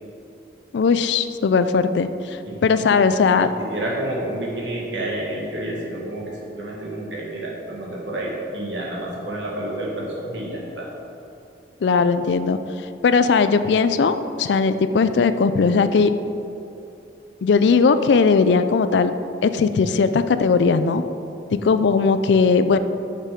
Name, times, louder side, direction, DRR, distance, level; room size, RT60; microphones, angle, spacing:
voice 1, 0.7-3.5 11.8-12.6 13.0-16.1 17.4-19.1 19.4-21.0 21.5-22.8, left 5 dB, 75° left, 11 dB, 0.4 m, -18 dB
voice 2, 3.3-10.9, right 1 dB, 80° right, -3 dB, 1.7 m, -29 dB
6.3 x 6.2 x 5.2 m, 2.7 s
head